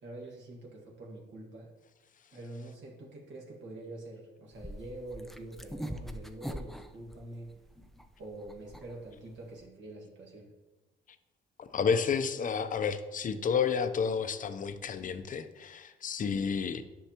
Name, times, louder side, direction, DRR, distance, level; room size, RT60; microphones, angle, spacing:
voice 1, 0.0-1.7 2.3-7.5 8.2-10.5, right 1 dB, 65° right, -3 dB, 1.7 m, -45 dB
sound 1, 4.5-9.7, equal, ahead, 0.5 m, -43 dB
voice 2, 11.6-16.8, left 6 dB, 40° left, 11 dB, 0.6 m, -31 dB
10.0 x 6.0 x 2.9 m, 1.2 s
cardioid pair, 90°, 20 cm